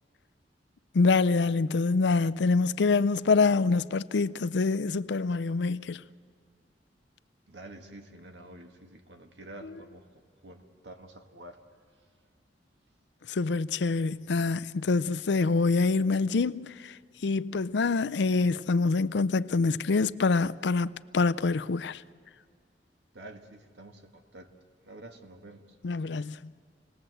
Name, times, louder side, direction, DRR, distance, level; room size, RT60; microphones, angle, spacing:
voice 1, 0.9-6.0 13.3-16.7 17.2-22.0 25.8-26.3, left 4 dB, 75° left, 0.5 m, -25 dB
voice 2, 7.5-10.1 10.4-11.6 23.1-24.5 24.8-25.8, right 1 dB, 75° right, 1.8 m, -48 dB
27.5 x 19.5 x 7.9 m
head